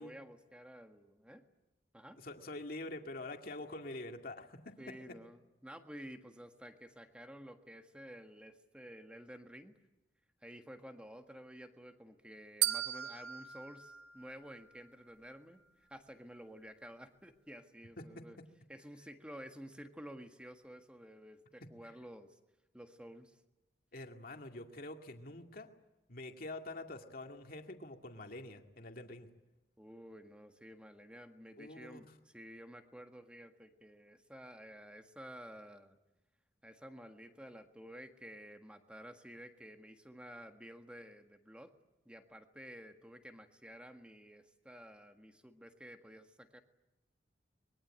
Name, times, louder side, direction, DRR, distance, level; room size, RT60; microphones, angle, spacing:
voice 1, 0.0-1.4 1.9-2.2 4.8-9.8 10.4-18.4 18.7-22.4 22.7-23.4 29.8-36.0 36.6-41.7 42.0-46.6, equal, 5° right, 5 dB, 1.6 m, -52 dB
voice 2, 2.2-4.9 18.0-18.2 23.9-25.7 26.1-29.3 31.6-32.0, left 2 dB, 55° left, 4 dB, 2.2 m, -46 dB
sound 1, 12.6-14.9, right 12 dB, 65° right, 1.2 m, -37 dB
24.5 x 22.5 x 8.9 m, 0.99 s
head